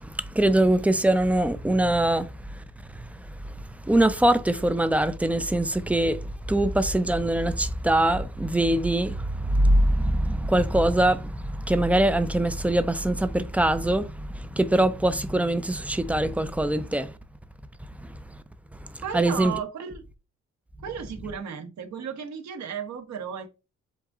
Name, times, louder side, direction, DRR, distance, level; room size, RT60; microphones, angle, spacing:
voice 1, 0.0-2.6 2.9-17.1 18.0-18.2 18.8-19.5, right 1 dB, 5° right, 0.4 m, -23 dB
voice 2, 19.0-20.0 20.8-23.5, right 7 dB, 65° right, 1.3 m, -34 dB
7.9 x 2.8 x 2.4 m
cardioid pair, 90°, 30 cm